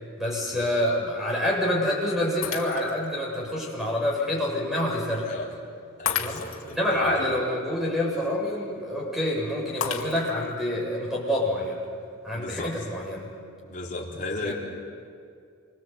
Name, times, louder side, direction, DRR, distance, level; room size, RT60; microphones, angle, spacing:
voice 1, 0.2-5.3 6.2-6.4 6.7-11.8 12.2-13.3 14.4-14.5, left 1 dB, ahead, -3 dB, 7.1 m, -27 dB
Shatter, 2.4-3.1 3.7-3.8 6.1-6.8 9.8-10.5, left 8 dB, 65° left, 2.3 m, -32 dB
voice 2, 6.0-7.3 12.3-12.9 13.6-14.5, left 2 dB, 40° left, -2 dB, 4.1 m, -36 dB
28.0 x 25.0 x 8.3 m, 2.3 s
head